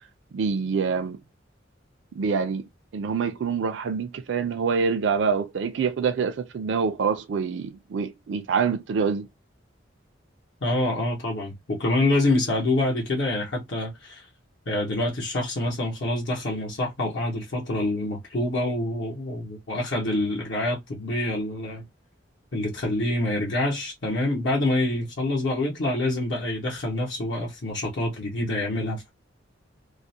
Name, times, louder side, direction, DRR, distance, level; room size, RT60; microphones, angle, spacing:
voice 1, 0.3-1.2 2.1-2.7 2.9-9.3, right 5 dB, 70° right, 0.4 m, -26 dB
voice 2, 10.6-14.3 14.7-21.9 22.5-29.1, left 1 dB, 70° left, 0.8 m, -26 dB
2.4 x 2.0 x 2.6 m
head